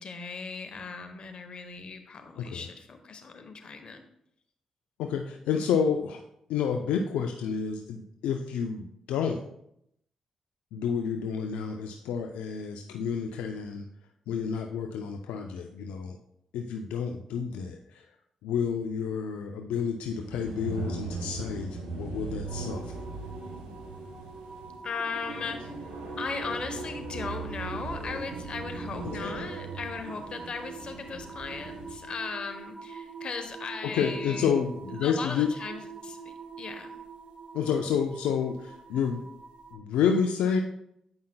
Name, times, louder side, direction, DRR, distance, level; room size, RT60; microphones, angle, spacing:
voice 1, 0.0-4.0 24.8-25.6 26.2-34.5 34.9-36.9, left 4 dB, 55° left, 6 dB, 0.9 m, -37 dB
voice 2, 2.4-2.7 5.0-6.2 6.5-9.4 10.7-13.9 14.3-16.2 16.5-18.1 18.4-22.9 29.0-29.5 33.8-35.5 37.5-39.2 39.7-40.6, left 7 dB, 80° left, 4 dB, 0.4 m, -30 dB
sound 1, 20.1-32.1, right 3 dB, 85° right, 1.1 m, -39 dB
sound 2, 22.5-39.7, right 4 dB, 60° right, 1.0 m, -44 dB
8.7 x 5.4 x 2.2 m, 0.76 s
hypercardioid pair, 45°, 2 cm